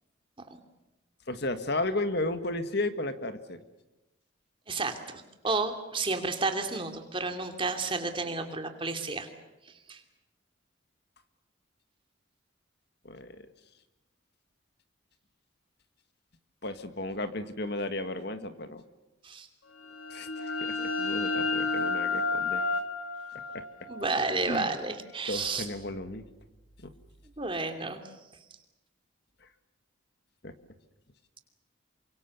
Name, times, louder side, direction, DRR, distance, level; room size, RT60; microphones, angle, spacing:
voice 1, 1.3-3.6 13.0-13.5 16.6-18.8 20.1-22.7 23.5-23.7 24.5-24.7 25.3-26.3 26.8-26.9 29.4-29.5 30.4-30.5, left 2 dB, 50° left, 10 dB, 1.8 m, -34 dB
voice 2, 4.7-9.3 9.9-10.0 19.2-19.5 23.9-25.6 27.4-28.0, right 3 dB, 25° right, 6 dB, 2.8 m, -31 dB
sound 1, 19.8-25.3, left 4 dB, 85° left, 3.1 m, -32 dB
29.0 x 25.0 x 7.1 m, 1.0 s
head